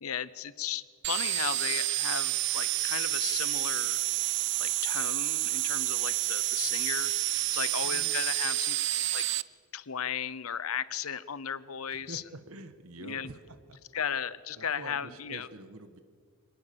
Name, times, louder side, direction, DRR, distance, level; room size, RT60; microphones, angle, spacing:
voice 1, 0.0-4.0 4.6-7.1 7.5-8.8 9.1-9.3 9.7-12.2 13.0-13.3 13.9-15.5, left 8 dB, 90° left, 17 dB, 0.8 m, -35 dB
sound 1, 1.0-9.4, right 17 dB, 55° right, 0.5 m, -29 dB
voice 2, 7.8-8.3 11.9-13.4 13.7-13.8 14.6-16.0, right 2 dB, 85° right, 10 dB, 1.6 m, -46 dB
25.5 x 19.0 x 7.0 m, 2.1 s
head